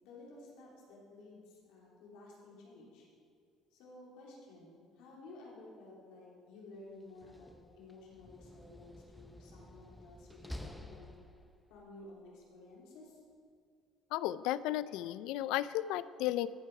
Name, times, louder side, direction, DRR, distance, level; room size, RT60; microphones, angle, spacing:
voice 1, 0.0-3.1 3.7-11.1 11.7-13.2, left 2 dB, 90° left, -4 dB, 3.1 m, -54 dB
Slam, 7.0-11.8, left 1 dB, ahead, 0.5 m, -51 dB
voice 2, 14.1-16.5, left 14 dB, 75° left, 17 dB, 0.3 m, -34 dB
13.5 x 7.7 x 4.7 m, 2.2 s
cardioid pair, 175°, 0 cm